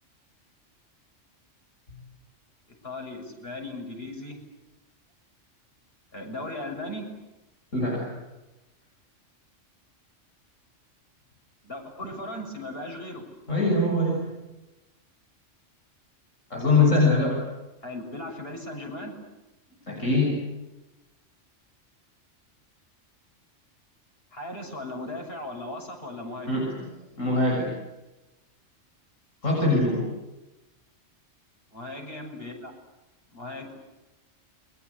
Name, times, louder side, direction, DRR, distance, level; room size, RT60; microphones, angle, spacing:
voice 1, 2.8-4.4 6.1-7.1 11.6-13.2 17.8-19.1 24.3-26.6 31.7-32.7 33.3-33.7, left 1 dB, 50° left, 2 dB, 7.1 m, -37 dB
voice 2, 7.7-8.1 13.5-14.3 16.5-17.4 19.9-20.4 26.5-26.9 27.2-27.8 29.4-30.1, left 2 dB, 85° left, -2 dB, 7.4 m, -23 dB
29.0 x 23.5 x 8.4 m, 1.0 s
omnidirectional pair, 1.3 m